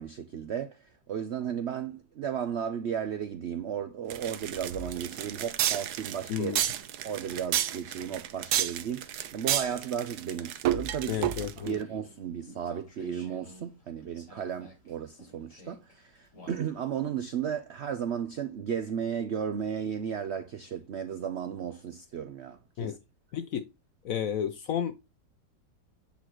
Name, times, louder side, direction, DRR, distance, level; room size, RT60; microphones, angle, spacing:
voice 1, 0.0-6.7 7.0-11.2 11.6-23.0, right 8 dB, 90° right, 0.5 m, -34 dB
sound 1, 4.1-11.8, right 11 dB, 70° right, 1.1 m, -31 dB
voice 2, 6.3-6.6 11.1-11.8 22.8-23.0 23.3-23.7 24.0-24.9, left 9 dB, 70° left, 0.8 m, -31 dB
sound 2, 11.6-17.0, left 1 dB, 45° left, 3.4 m, -54 dB
8.3 x 4.0 x 2.9 m
omnidirectional pair, 1.9 m